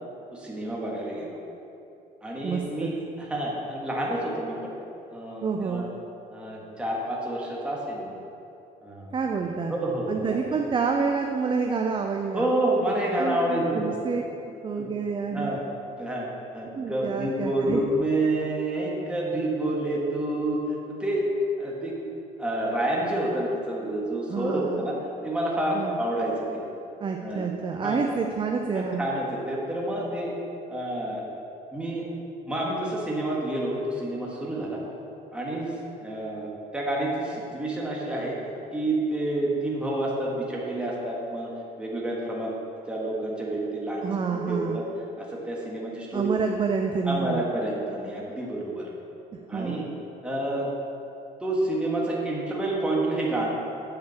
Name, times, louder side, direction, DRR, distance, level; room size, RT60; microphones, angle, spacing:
voice 1, 0.3-1.4 2.2-4.7 5.1-5.9 6.3-8.2 8.8-9.1 9.7-10.4 12.3-13.8 14.8-14.9 15.3-15.6 16.0-20.6 20.9-21.2 21.6-21.9 22.4-25.0 25.2-26.6 27.2-27.5 27.7-28.1 28.7-30.3 30.7-31.2 31.7-32.0 32.5-34.8 35.3-35.7 36.0-38.3 38.7-41.5 41.8-42.5 42.9-44.8 45.2-46.3 47.0-48.9 49.5-49.9 50.2-50.7 51.4-53.5, right 1 dB, 5° right, -4 dB, 1.5 m, -29 dB
voice 2, 2.4-2.9 5.4-5.9 9.1-9.7 10.1-12.5 13.2-14.2 14.6-15.6 16.7-17.8 24.3-24.8 25.7-26.0 27.0-29.1 44.0-44.8 46.1-47.5 49.5-49.9, right 5 dB, 30° right, 3 dB, 0.5 m, -28 dB
8.1 x 5.1 x 6.9 m, 2.9 s
cardioid pair, 110°, 17 cm